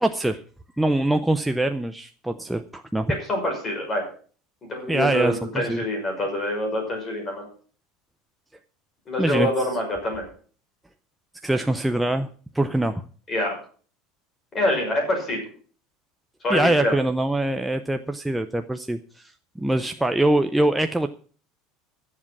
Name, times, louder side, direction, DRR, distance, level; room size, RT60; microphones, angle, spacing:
voice 1, 0.0-0.4 0.8-3.1 4.9-5.8 9.2-9.5 11.4-12.3 12.5-13.0 16.5-21.1, right 1 dB, 5° right, 7 dB, 0.5 m, -23 dB
voice 2, 3.3-4.0 4.7-7.5 9.1-10.2 13.3-13.5 14.5-15.4 16.4-16.9, left 1 dB, 25° left, 2 dB, 5.9 m, -25 dB
12.0 x 7.6 x 7.2 m, 0.43 s
supercardioid pair, 140°, 0 cm